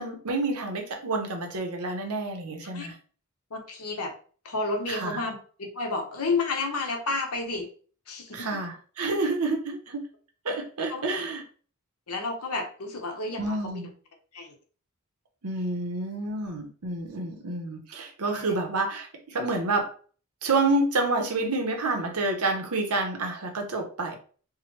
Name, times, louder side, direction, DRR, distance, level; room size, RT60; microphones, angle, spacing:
voice 1, 0.0-2.9 4.9-5.2 8.3-10.1 10.4-11.4 13.4-13.9 15.4-19.9 20.4-24.2, right 2 dB, 90° right, 3 dB, 0.9 m, -28 dB
voice 2, 3.5-4.1 4.4-7.7 8.1-8.6 10.9-11.0 12.1-13.9 14.3-14.5 18.3-18.5, left 3 dB, 85° left, 3 dB, 1.0 m, -31 dB
4.7 x 2.2 x 3.2 m, 0.41 s
head